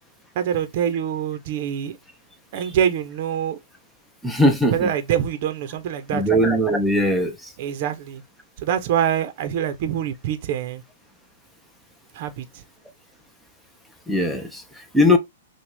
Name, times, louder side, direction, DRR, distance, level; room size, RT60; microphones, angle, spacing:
voice 1, 0.3-2.0 2.5-3.6 4.7-6.2 7.6-8.2 8.6-10.8 12.1-12.4, right 9 dB, 45° right, 0.8 m, -25 dB
voice 2, 4.2-4.9 6.1-7.5 14.1-15.2, left 1 dB, ahead, 0.7 m, -20 dB
6.1 x 2.4 x 3.5 m
hypercardioid pair, 150°, 0 cm